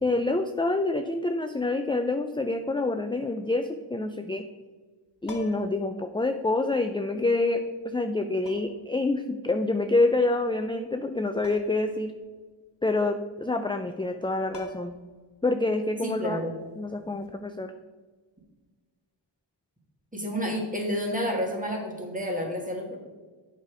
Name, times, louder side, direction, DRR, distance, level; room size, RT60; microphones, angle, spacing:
voice 1, 0.0-4.4 5.2-12.1 12.8-14.9 15.4-16.4 16.8-17.7, left 2 dB, 10° left, 7 dB, 0.3 m, -27 dB
sound 1, 5.2-5.8 7.2-7.3 8.4-8.9 11.4-11.9 12.2-12.3 14.1-14.2 14.5-15.1 17.1-17.3, left 2 dB, 55° left, 1.0 m, -42 dB
voice 2, 16.0-16.5 20.1-23.0, equal, 15° right, -1 dB, 1.9 m, -30 dB
8.3 x 4.9 x 4.9 m, 1.4 s
wide cardioid pair, 50°, 48 cm